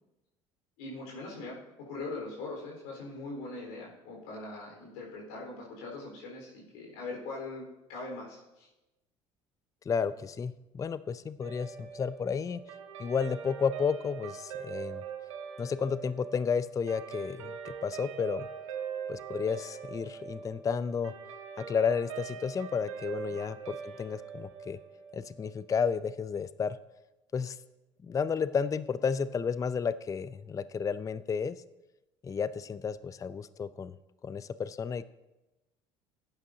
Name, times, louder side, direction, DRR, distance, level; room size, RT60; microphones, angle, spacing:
voice 1, 0.8-8.7, left 2 dB, 70° left, -2 dB, 4.1 m, -41 dB
voice 2, 9.9-12.6 13.0-15.0 15.6-18.5 19.1-21.1 21.6-24.8 25.1-26.8 27.3-27.6 28.0-31.6 32.2-34.0 34.2-35.1, left 6 dB, 20° left, 16 dB, 0.4 m, -32 dB
Guitar, 11.4-26.0, right 7 dB, 80° right, 1.4 m, -43 dB
17.5 x 8.8 x 2.7 m, 1.0 s
hypercardioid pair, 65°, 16 cm